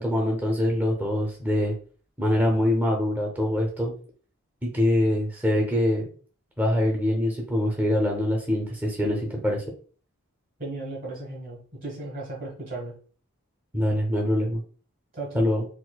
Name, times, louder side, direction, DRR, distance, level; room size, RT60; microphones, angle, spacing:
voice 1, 0.0-1.7 2.2-3.9 4.6-6.0 6.6-9.6 13.7-14.6 15.3-15.7, left 1 dB, 10° right, 0 dB, 0.6 m, -24 dB
voice 2, 10.6-12.9 15.1-15.5, right 2 dB, 40° right, -3 dB, 1.3 m, -35 dB
4.2 x 2.5 x 2.2 m, 0.42 s
head